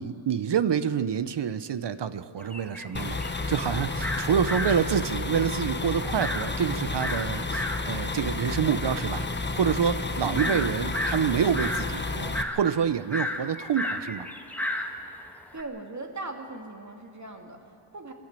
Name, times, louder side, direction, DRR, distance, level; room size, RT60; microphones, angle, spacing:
voice 1, 0.0-3.2 3.5-9.3 9.5-14.3, right 8 dB, 55° right, 14 dB, 0.8 m, -27 dB
sound 1, 2.4-15.6, left 1 dB, 5° left, 1.6 m, -34 dB
sound 2, 2.9-12.4, left 3 dB, 20° left, 1.0 m, -31 dB
voice 2, 10.2-10.8 15.5-18.1, right 2 dB, 35° right, 3 dB, 2.5 m, -39 dB
24.0 x 14.0 x 8.3 m, 2.5 s
wide cardioid pair, 90°, 50 cm